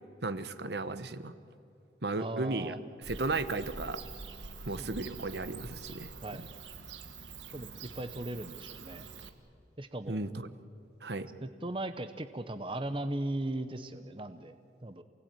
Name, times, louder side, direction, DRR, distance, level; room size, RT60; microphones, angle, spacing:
voice 1, 0.2-1.3 2.0-2.8 3.1-4.0 4.7-6.1 10.1-10.5 11.0-11.3, right 3 dB, 65° right, 12 dB, 1.1 m, -34 dB
voice 2, 2.2-2.8 4.8-5.0 6.2-6.4 7.5-9.0 9.8-10.2 11.4-15.0, right 1 dB, 30° right, 10 dB, 0.9 m, -38 dB
Bird / Cricket, 3.0-9.3, right 4 dB, 90° right, 1.6 m, -46 dB
28.0 x 18.5 x 9.1 m, 2.6 s
head